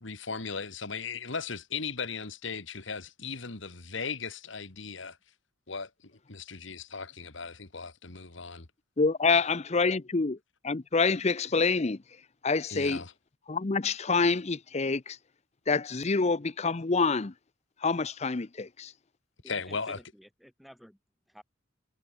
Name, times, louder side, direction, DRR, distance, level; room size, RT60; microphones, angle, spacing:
voice 1, 0.0-5.2 5.7-8.7 12.7-13.1 19.5-20.0, left 5 dB, 65° left, 1.8 m, -37 dB
voice 2, 9.0-10.4 10.6-12.0 12.4-13.0 13.5-15.2 15.7-17.3 17.8-18.9, left 4 dB, 30° left, 0.6 m, -27 dB
voice 3, 19.4-21.0 21.3-21.4, equal, ahead, 4.0 m, -52 dB
head